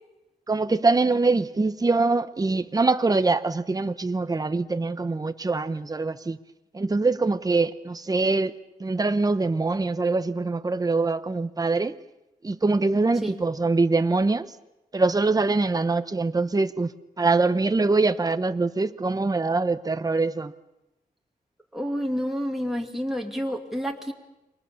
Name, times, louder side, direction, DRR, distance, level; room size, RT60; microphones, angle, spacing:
voice 1, 0.5-6.4 6.7-8.5 8.8-11.9 12.4-14.5 14.9-20.5, right 3 dB, 25° right, 0.9 m, -23 dB
voice 2, 21.7-24.1, equal, ahead, 2.6 m, -29 dB
29.5 x 24.5 x 7.1 m
wide cardioid pair, 120°, 16 cm